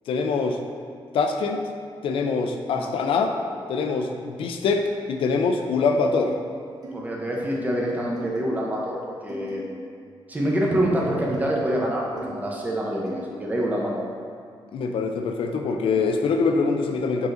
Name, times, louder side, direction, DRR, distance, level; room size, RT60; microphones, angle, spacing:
voice 1, 0.1-0.6 1.1-1.6 2.0-3.4 3.7-6.3 14.7-17.3, left 4 dB, 75° left, 4 dB, 0.4 m, -24 dB
sound 1, 6.0-6.2 6.8-6.9 7.5-7.6 8.2-8.4 9.3-9.5 10.5-10.7 11.3-11.5 12.2-12.3 13.1-13.2, right 1 dB, 45° right, 0.9 m, -39 dB
voice 2, 6.9-9.6 10.3-14.0, right 1 dB, 15° right, -2 dB, 0.7 m, -26 dB
4.8 x 3.9 x 2.5 m, 2.3 s
cardioid pair, 120°, 9 cm